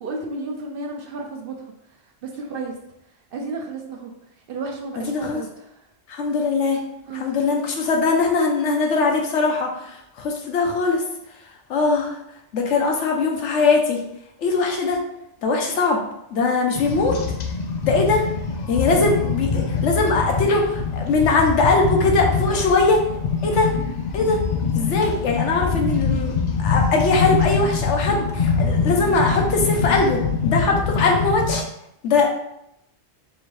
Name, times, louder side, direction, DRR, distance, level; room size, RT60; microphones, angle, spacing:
voice 1, 0.0-1.6 2.2-2.8 3.3-4.1 4.5-5.8 7.1-7.4, right 3 dB, 60° right, 2 dB, 0.7 m, -32 dB
voice 2, 5.1-5.4 6.1-6.8 7.1-11.0 11.7-12.2 12.5-14.0 14.4-15.0 15.4-16.0 16.3-17.2 17.8-18.2 18.7-23.0 23.4-23.7 24.1-24.4 24.7-26.3 26.6-31.6 32.0-32.3, left 3 dB, 85° left, 1 dB, 1.1 m, -21 dB
sound 1, 16.7-31.6, left 5 dB, 60° left, 0.5 m, -24 dB
4.4 x 2.6 x 3.2 m, 0.80 s
omnidirectional pair, 1.2 m